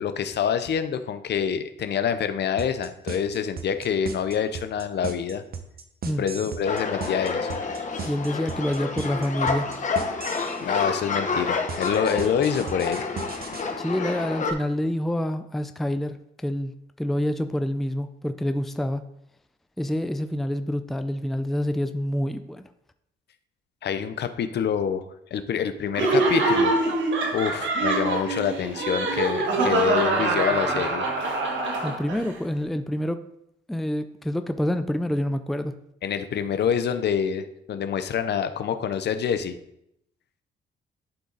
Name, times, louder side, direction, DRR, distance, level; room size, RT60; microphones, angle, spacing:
voice 1, 0.0-5.4 6.2-7.6 10.6-13.1 23.8-25.1 25.3-26.7 27.3-31.1 36.0-39.6, left 7 dB, 60° left, 10 dB, 0.7 m, -26 dB
sound 1, 2.6-10.6 11.7-13.6, right 6 dB, 50° right, 1.0 m, -36 dB
sound 2, 6.6-14.5, left 4 dB, 40° left, 1.1 m, -29 dB
voice 2, 8.1-9.7 13.8-16.2 16.4-16.7 17.0-19.0 19.8-22.7 31.8-33.2 33.7-35.7, left 1 dB, ahead, 9 dB, 0.4 m, -27 dB
Laughter, 25.9-32.3, right 2 dB, 70° right, 1.5 m, -24 dB
11.5 x 3.8 x 4.0 m, 0.78 s
cardioid pair, 90°, 20 cm